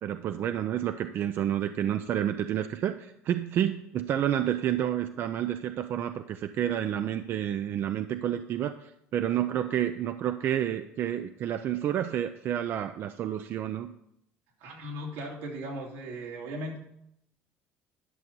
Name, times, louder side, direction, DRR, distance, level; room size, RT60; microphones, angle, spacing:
voice 1, 0.0-13.9, right 10 dB, 50° right, 9 dB, 0.5 m, -29 dB
voice 2, 14.6-16.8, right 1 dB, 90° right, -1 dB, 2.9 m, -37 dB
11.0 x 6.5 x 5.4 m, 0.77 s
cardioid pair, 115°, 5 cm